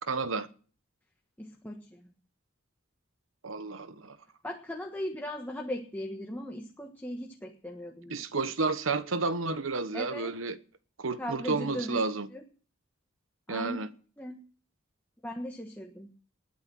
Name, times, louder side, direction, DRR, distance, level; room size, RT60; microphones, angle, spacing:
voice 1, 0.0-0.5 3.4-4.2 8.1-10.6 11.0-12.3 13.5-13.9, right 3 dB, 80° right, 1.1 m, -31 dB
voice 2, 1.4-2.1 4.4-8.3 9.9-10.3 11.2-12.0 12.3-12.4 13.5-13.8 14.2-14.4 15.2-16.1, equal, 10° left, 1.3 m, -38 dB
20.0 x 9.7 x 6.2 m
head